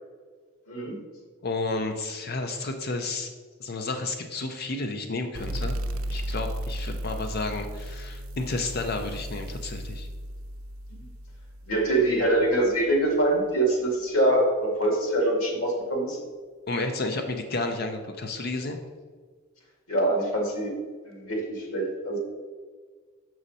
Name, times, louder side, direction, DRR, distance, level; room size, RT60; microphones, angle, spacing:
voice 1, 1.4-3.3 3.6-5.7 6.1-10.1 16.7-18.8, left 3 dB, 50° left, 5 dB, 0.5 m, -31 dB
sound 1, 5.3-12.6, right 1 dB, 80° right, 0.6 m, -35 dB
voice 2, 11.7-16.2 19.9-20.8 21.1-22.2, right 1 dB, 90° left, 0 dB, 2.2 m, -24 dB
6.3 x 6.2 x 4.1 m, 1.6 s
head